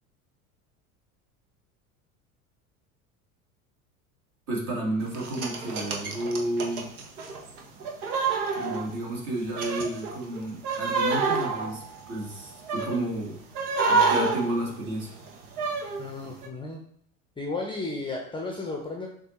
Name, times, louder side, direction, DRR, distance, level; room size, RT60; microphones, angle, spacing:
voice 1, 4.5-6.9 8.5-13.4 13.9-15.2, right 1 dB, 45° right, -1 dB, 1.8 m, -31 dB
sound 1, 5.1-9.2 9.5-13.1 13.5-16.1 16.4-16.5, right 4 dB, 70° right, 0.9 m, -28 dB
voice 2, 16.0-16.8 17.4-19.1, left 3 dB, 10° left, 1 dB, 0.6 m, -33 dB
6.2 x 2.6 x 3.1 m, 0.64 s
figure-of-eight pair, 75°, 45 cm